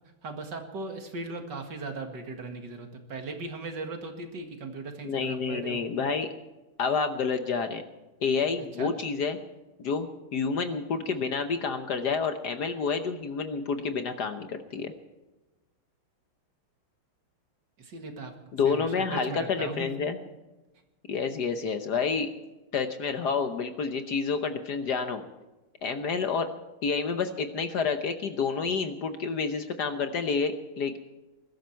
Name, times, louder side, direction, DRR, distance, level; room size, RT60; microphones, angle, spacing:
voice 1, 0.2-5.9 8.8-8.9 17.8-18.3 18.6-19.9, right 3 dB, 55° right, 5 dB, 2.4 m, -38 dB
voice 2, 5.0-6.3 6.8-7.8 8.2-9.4 9.8-14.9 18.5-20.2 21.1-22.3 22.7-25.2 25.8-26.5 26.8-31.0, left 5 dB, 60° left, 8 dB, 1.4 m, -29 dB
21.5 x 13.0 x 4.6 m, 1.1 s
omnidirectional pair, 2.3 m